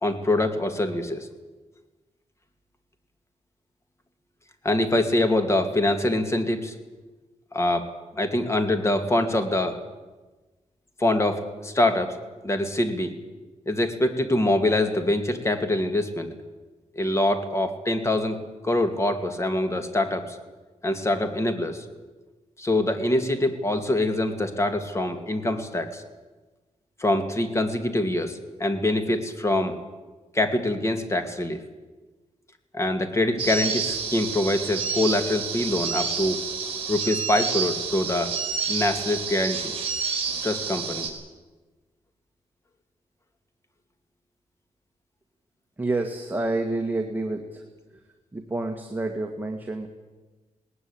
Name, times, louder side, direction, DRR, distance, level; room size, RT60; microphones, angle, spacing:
voice 1, 0.0-1.3 4.6-6.7 7.5-7.9 8.2-9.8 11.0-12.2 12.4-13.1 13.7-16.3 16.9-20.4 20.8-21.9 22.6-26.0 27.0-29.8 30.3-31.6 32.7-36.4 36.9-38.3 38.7-39.7 40.4-41.1, left 1 dB, 20° left, 7 dB, 2.4 m, -24 dB
sound 1, 33.4-41.1, right 5 dB, 45° right, 5.4 m, -29 dB
voice 2, 45.8-47.7 47.9-48.0 48.3-49.9, right 2 dB, 15° right, 3 dB, 1.9 m, -28 dB
19.5 x 19.0 x 8.8 m, 1.2 s
wide cardioid pair, 120°, 13 cm